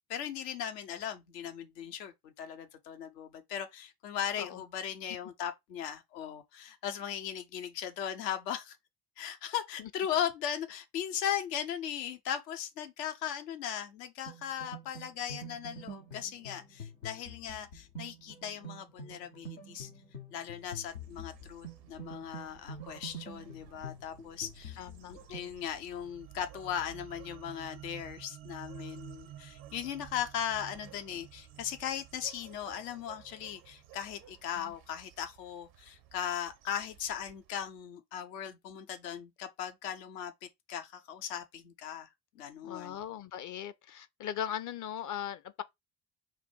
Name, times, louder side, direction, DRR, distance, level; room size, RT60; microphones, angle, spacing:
voice 1, 0.1-8.8 9.2-19.9 20.3-24.8 25.1-42.1 42.3-43.0, left 9 dB, 75° left, 0.9 m, -38 dB
sound 1, 14.3-25.5, right 1 dB, 90° left, 1.2 m, -47 dB
sound 2, 20.5-37.8, right 12 dB, 80° right, 0.9 m, -57 dB
voice 2, 24.8-25.1 34.6-34.7 42.6-45.6, left 9 dB, 40° left, 0.6 m, -39 dB
sound 3, 25.6-34.0, right 11 dB, 30° right, 0.4 m, -52 dB
4.9 x 2.2 x 4.5 m
figure-of-eight pair, 50°, 49 cm